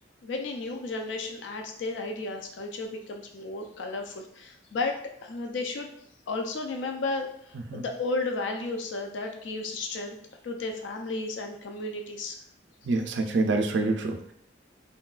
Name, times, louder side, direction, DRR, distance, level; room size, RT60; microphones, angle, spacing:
voice 1, 0.2-4.9 5.2-5.9 6.3-10.2 10.4-12.4, left 3 dB, 70° left, 3 dB, 0.4 m, -33 dB
voice 2, 12.8-14.3, right 3 dB, 70° right, 5 dB, 0.4 m, -26 dB
3.7 x 2.2 x 2.3 m, 0.66 s
head